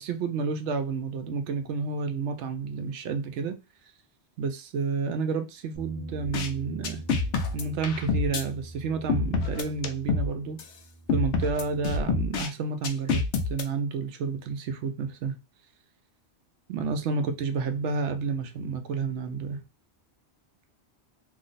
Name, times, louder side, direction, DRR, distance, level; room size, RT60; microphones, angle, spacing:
voice 1, 0.0-3.6 4.4-7.0 7.5-10.6 11.1-15.4 16.7-19.6, right 5 dB, 90° right, 0.9 m, -30 dB
Bass guitar, 5.7-12.0, right 2 dB, 45° right, 0.6 m, -43 dB
sound 1, 6.2-6.5 6.8-8.4 9.1-10.3 10.6-10.7 11.1-12.5 12.8-13.6, left 4 dB, 80° left, 0.9 m, -27 dB
2.8 x 2.0 x 3.9 m
omnidirectional pair, 1.1 m